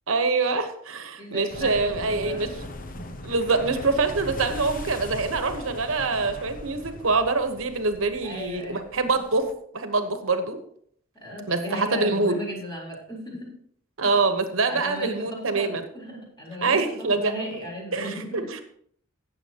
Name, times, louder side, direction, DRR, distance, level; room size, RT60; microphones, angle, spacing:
voice 1, 0.1-2.5 3.2-9.4 9.7-10.6 11.5-12.4 14.0-15.8 16.6-17.4 17.9-18.6, right 3 dB, 75° right, 8 dB, 1.1 m, -25 dB
voice 2, 1.2-2.5 8.2-8.8 11.2-13.5 14.7-18.5, equal, 20° left, -3 dB, 3.8 m, -36 dB
sound 1, 1.5-9.5, left 2 dB, 40° left, 0.9 m, -39 dB
16.5 x 7.1 x 2.9 m, 0.62 s
head